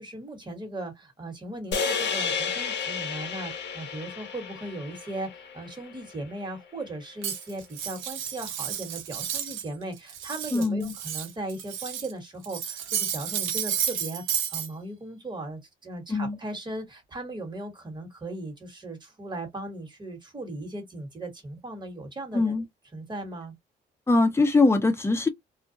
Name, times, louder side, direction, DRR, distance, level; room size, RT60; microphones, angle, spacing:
voice 1, 0.0-22.6 22.9-23.5, right 2 dB, 20° right, 1.3 m, -38 dB
sound 1, 1.7-6.1, left 5 dB, 60° left, 0.7 m, -32 dB
Cutlery silverware, 7.2-9.7 10.0-12.1 12.4-14.7, right 9 dB, 90° right, 0.6 m, -32 dB
voice 2, 10.5-10.9 16.1-16.4 22.3-22.6 24.1-25.3, left 3 dB, 10° left, 0.7 m, -22 dB
2.4 x 2.1 x 2.6 m
cardioid pair, 90°, 20 cm